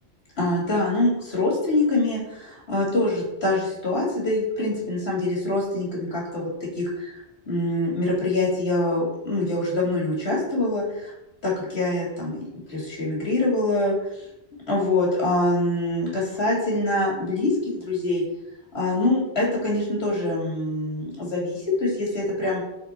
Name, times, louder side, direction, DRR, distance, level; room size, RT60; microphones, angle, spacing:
voice 1, 0.4-6.5 6.7-7.2 7.5-11.1 11.4-12.4 12.7-14.3 14.7-18.2 18.7-22.7, left 2 dB, 85° left, -4 dB, 2.7 m, -24 dB
5.9 x 4.4 x 4.3 m, 0.85 s
omnidirectional pair, 1.1 m